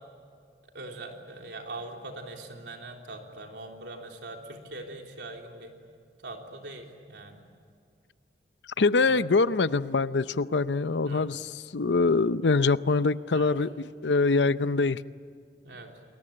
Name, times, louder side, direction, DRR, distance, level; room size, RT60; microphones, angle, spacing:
voice 1, 0.7-5.8 6.2-7.4 9.0-9.2 11.0-11.3 13.3-13.5 15.6-15.9, right 2 dB, 80° right, 2 dB, 3.6 m, -42 dB
voice 2, 8.8-15.0, left 3 dB, 80° left, 15 dB, 0.7 m, -24 dB
29.0 x 21.0 x 8.7 m, 2.2 s
head